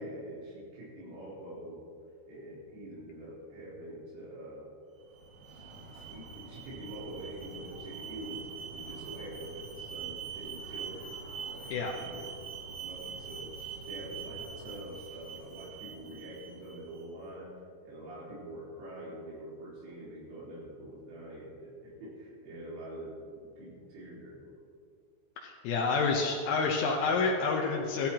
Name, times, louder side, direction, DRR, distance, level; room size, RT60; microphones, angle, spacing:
voice 1, 0.0-1.8 2.3-4.7 6.1-8.5 8.7-13.5 13.8-17.5 17.8-24.5, right 1 dB, 90° right, -7 dB, 6.5 m, -45 dB
Alarm, 5.0-17.0, right 6 dB, 55° right, 2.2 m, -44 dB
voice 2, 25.4-28.1, left 4 dB, 75° left, -1 dB, 3.1 m, -28 dB
17.0 x 13.5 x 2.9 m, 2.3 s
omnidirectional pair, 5.9 m